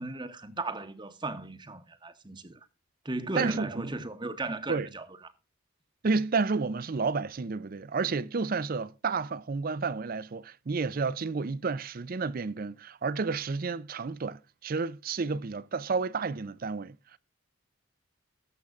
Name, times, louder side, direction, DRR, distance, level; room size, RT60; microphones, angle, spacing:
voice 1, 0.0-2.6 3.0-5.1, right 2 dB, 20° right, 0.8 m, -36 dB
voice 2, 3.4-3.9 4.7-4.9 6.0-17.2, right 4 dB, 40° right, 0.4 m, -31 dB
19.5 x 7.1 x 2.4 m
head